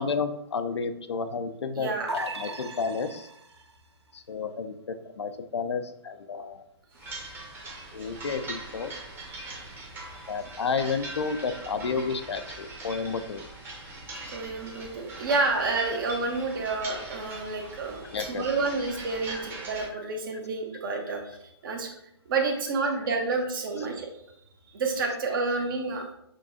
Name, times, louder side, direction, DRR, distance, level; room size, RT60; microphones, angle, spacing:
voice 1, 0.0-3.3 4.1-6.7 7.9-8.9 10.3-13.4 18.1-18.5 19.3-19.4 19.9-20.0, left 5 dB, 85° left, 9 dB, 0.5 m, -31 dB
voice 2, 1.7-2.1 14.3-21.4 21.6-21.9 22.3-24.1 24.7-26.0, right 3 dB, 55° right, 2 dB, 1.0 m, -29 dB
sound 1, 2.1-3.7, right 2 dB, 85° right, 0.5 m, -37 dB
sound 2, 6.9-19.9, right 2 dB, 15° right, 0.8 m, -41 dB
6.2 x 2.3 x 2.6 m, 0.77 s
hypercardioid pair, 140°, 14 cm